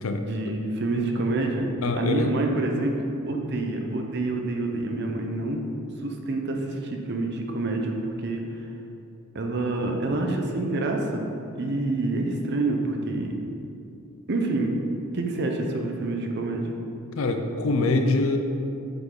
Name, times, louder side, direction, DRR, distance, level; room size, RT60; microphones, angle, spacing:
voice 1, 0.2-1.7 2.0-3.0 3.3-5.6 6.0-8.4 9.3-11.3 11.5-13.3 14.3-14.8 15.1-16.7, right 2 dB, 50° right, 2 dB, 0.7 m, -27 dB
voice 2, 1.8-2.3 17.2-18.4, left 2 dB, 70° left, 6 dB, 0.6 m, -24 dB
7.9 x 5.2 x 3.9 m, 2.6 s
head